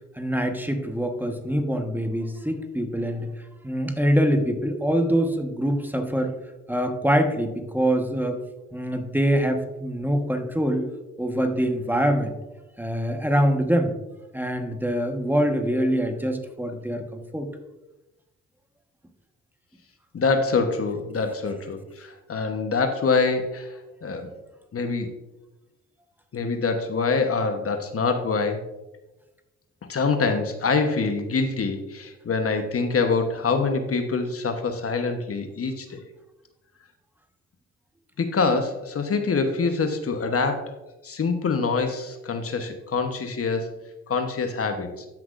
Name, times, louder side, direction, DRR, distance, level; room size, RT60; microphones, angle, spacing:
voice 1, 0.2-3.3 3.6-6.3 6.7-8.4 8.7-10.9 11.2-12.3 12.8-13.9 14.3-17.5, equal, 5° right, 5 dB, 1.3 m, -24 dB
voice 2, 20.1-24.3 24.7-25.2 26.3-28.6 29.9-36.0 38.2-40.7 41.0-43.7 44.1-45.1, left 4 dB, 45° left, 6 dB, 1.1 m, -25 dB
13.0 x 5.9 x 2.5 m, 1.0 s
supercardioid pair, 55°, 33 cm